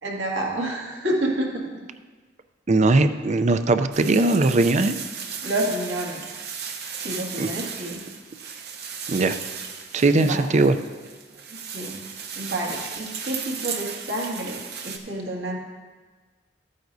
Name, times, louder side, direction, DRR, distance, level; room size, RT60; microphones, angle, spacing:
voice 1, 0.0-1.7 5.4-6.2 7.0-8.0 10.1-10.4 11.5-12.0 12.4-15.6, right 1 dB, 75° right, -2 dB, 2.0 m, -29 dB
voice 2, 2.7-4.9 7.4-7.5 9.1-9.4 9.9-10.8, right 2 dB, 40° right, 10 dB, 0.5 m, -19 dB
sound 1, 3.9-15.0, right 6 dB, 60° right, 0.9 m, -35 dB
14.5 x 9.2 x 2.7 m, 1.4 s
head